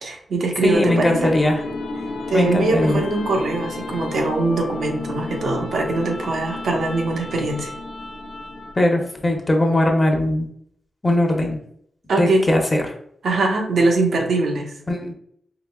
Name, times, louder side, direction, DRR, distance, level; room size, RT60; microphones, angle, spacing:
voice 1, 0.0-1.3 2.3-7.7 12.1-12.4 13.2-14.7, right 2 dB, 85° right, 1 dB, 0.8 m, -22 dB
voice 2, 0.6-1.6 2.3-3.0 8.8-10.5 11.0-11.6 12.2-12.9 14.9-15.1, left 1 dB, 20° left, 2 dB, 0.8 m, -20 dB
sound 1, 0.7-8.9, left 2 dB, 80° left, 0.6 m, -31 dB
4.9 x 3.1 x 2.3 m, 0.67 s
wide cardioid pair, 125°, 0 cm